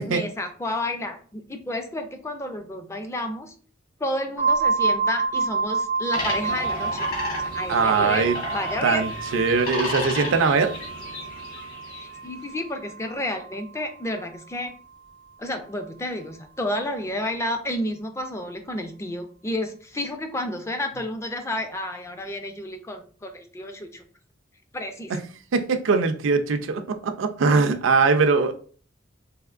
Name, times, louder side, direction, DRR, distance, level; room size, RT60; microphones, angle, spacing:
voice 1, 0.1-3.5 4.0-7.1 7.5-9.0 11.9-14.7 15.4-24.0 24.7-25.1, left 1 dB, 15° left, 0.4 m, -31 dB
sound 1, 4.4-14.0, right 4 dB, 80° left, 1.4 m, -29 dB
sound 2, 6.1-12.2, left 2 dB, 50° left, 1.3 m, -33 dB
voice 2, 7.7-8.4 8.8-10.7 25.1-25.2 25.5-28.5, right 4 dB, 80° right, 0.4 m, -21 dB
3.4 x 2.9 x 2.4 m
head